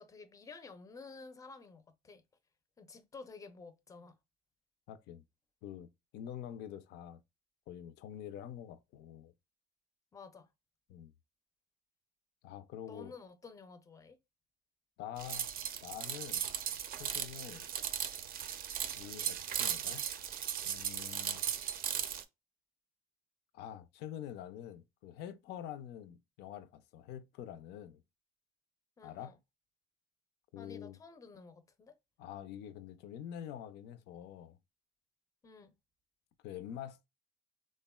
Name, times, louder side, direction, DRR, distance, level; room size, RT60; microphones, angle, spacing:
voice 1, 0.0-2.2 2.8-4.2 10.1-10.5 12.9-14.2 29.0-29.4 30.6-32.0 35.4-35.7, left 4 dB, 20° left, 0.4 m, -52 dB
voice 2, 4.9-5.2 5.6-7.2 7.7-9.3 10.9-11.1 12.4-13.2 15.0-15.5 15.8-16.5 17.0-17.7 19.0-20.1 20.6-21.4 23.5-28.0 29.0-29.4 30.5-31.0 32.2-34.6 36.4-37.1, left 10 dB, 80° left, 0.4 m, -46 dB
sound 1, 15.2-22.2, right 9 dB, 60° right, 0.4 m, -37 dB
3.5 x 2.1 x 2.2 m
cardioid pair, 110°, 17 cm